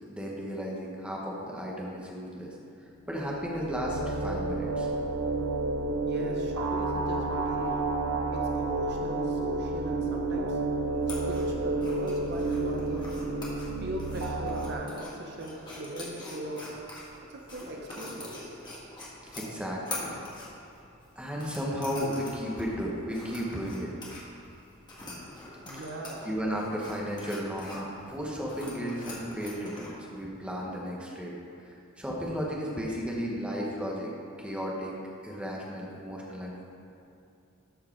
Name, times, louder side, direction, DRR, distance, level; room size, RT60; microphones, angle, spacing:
voice 1, 0.1-2.5 3.1-4.9 19.3-20.1 21.2-23.9 26.2-31.3 31.6-34.9 35.2-36.6, equal, 5° right, -3 dB, 1.1 m, -34 dB
sound 1, 3.1-14.7, right 2 dB, 85° right, 0.8 m, -30 dB
voice 2, 6.0-7.9 8.3-10.6 11.3-13.2 13.8-16.7 17.3-18.6 25.6-26.3, right 1 dB, 50° right, 0 dB, 0.9 m, -40 dB
sound 2, 10.9-30.0, left 2 dB, 20° left, 1.8 m, -44 dB
13.0 x 4.7 x 4.6 m, 2.6 s
head